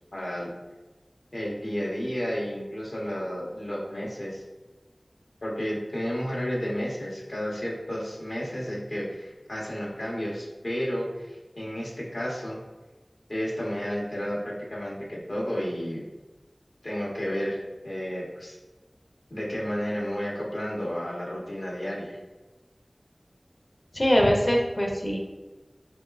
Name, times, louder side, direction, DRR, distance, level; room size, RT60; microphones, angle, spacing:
voice 1, 0.1-0.5 1.3-4.4 5.4-12.6 13.3-16.1 16.8-18.6 19.3-22.2, equal, 75° left, -4 dB, 1.0 m, -32 dB
voice 2, 23.9-25.2, equal, 50° left, 0 dB, 0.7 m, -22 dB
3.8 x 3.4 x 2.4 m, 1.2 s
wide cardioid pair, 45°, 0 cm